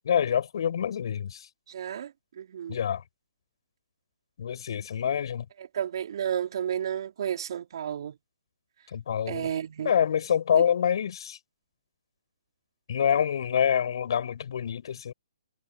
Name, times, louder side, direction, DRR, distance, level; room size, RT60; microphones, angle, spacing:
voice 1, 0.0-1.5 2.7-3.0 4.4-5.5 8.9-9.5 9.9-11.4 12.9-15.1, left 8 dB, 60° left, 6.9 m, -26 dB
voice 2, 1.7-2.8 5.6-8.1 9.3-9.9 10.5-10.6, right 9 dB, 55° right, 4.9 m, -32 dB
hypercardioid pair, 140°, 3 cm